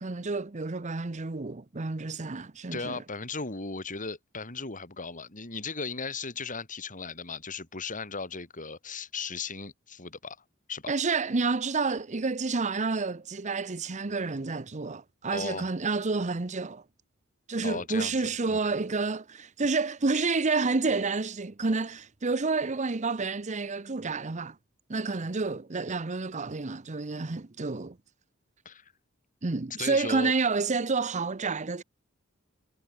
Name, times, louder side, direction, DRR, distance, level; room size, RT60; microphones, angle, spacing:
voice 1, 0.0-3.0 10.9-16.8 17.5-24.6 24.9-28.0 29.4-31.8, right 4 dB, 35° right, 0.8 m, -29 dB
voice 2, 2.7-10.4 10.7-10.9 15.3-15.7 17.6-18.6 20.1-20.3 28.6-28.9 29.8-30.3, left 4 dB, 40° left, 4.4 m, -37 dB
head